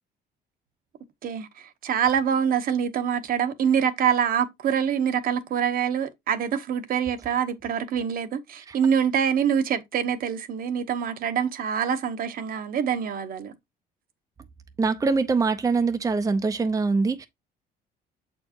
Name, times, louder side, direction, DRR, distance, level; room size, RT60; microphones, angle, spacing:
voice 1, 1.2-13.5, right 8 dB, 60° right, 1.0 m, -25 dB
voice 2, 14.8-17.3, right 4 dB, 20° right, 0.6 m, -23 dB
7.3 x 4.5 x 2.9 m
cardioid pair, 110°, 17 cm